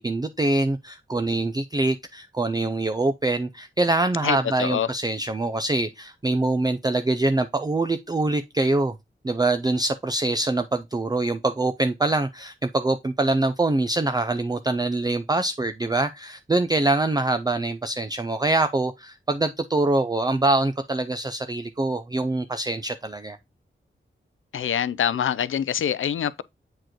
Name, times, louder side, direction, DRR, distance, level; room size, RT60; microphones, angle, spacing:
voice 1, 0.0-9.0 9.2-23.4, right 2 dB, 20° right, 0.4 m, -24 dB
voice 2, 4.2-4.9 24.5-26.4, left 9 dB, 85° left, 0.4 m, -25 dB
7.8 x 4.6 x 2.9 m
wide cardioid pair, 95°, 20 cm